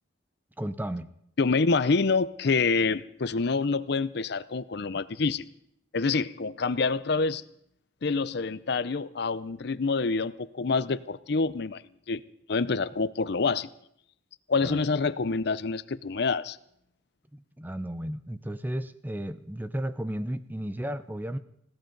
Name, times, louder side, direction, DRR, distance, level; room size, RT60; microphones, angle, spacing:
voice 1, 0.6-1.1 14.6-14.8 17.3-21.4, right 1 dB, 10° right, 12 dB, 0.6 m, -34 dB
voice 2, 1.4-5.4 5.9-7.4 8.0-11.8 12.1-12.2 12.5-13.7 14.5-16.6, left 4 dB, 60° left, 16 dB, 0.6 m, -27 dB
21.0 x 17.0 x 4.0 m, 0.73 s
head